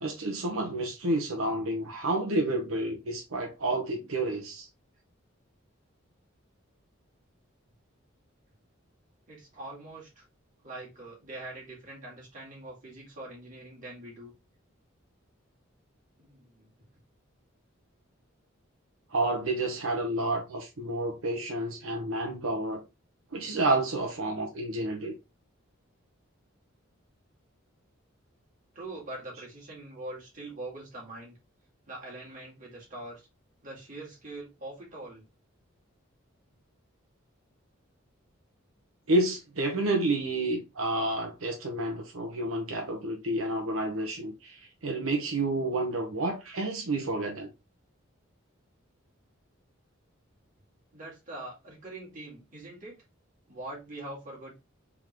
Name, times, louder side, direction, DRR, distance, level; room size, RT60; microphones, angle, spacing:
voice 1, 0.0-4.7 19.1-22.8 23.3-25.1 39.1-47.5, right 2 dB, 90° right, 1.0 m, -30 dB
voice 2, 9.3-10.2 10.6-14.3 16.2-16.7 28.7-31.4 31.9-33.3 33.6-35.2 50.9-53.0 53.5-54.6, right 2 dB, 40° right, 2.1 m, -43 dB
3.7 x 3.7 x 3.1 m
head